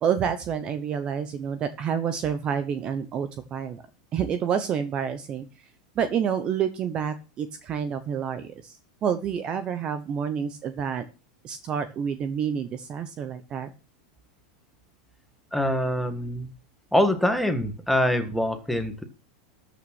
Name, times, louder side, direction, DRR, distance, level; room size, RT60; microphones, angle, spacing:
voice 1, 0.0-3.8 4.1-5.5 5.9-11.0 11.4-13.7, right 7 dB, 30° right, 10 dB, 1.0 m, -28 dB
voice 2, 15.5-16.5 16.9-19.0, left 1 dB, ahead, 7 dB, 1.6 m, -24 dB
13.5 x 6.2 x 6.1 m, 0.33 s
supercardioid pair, 150°, 3 cm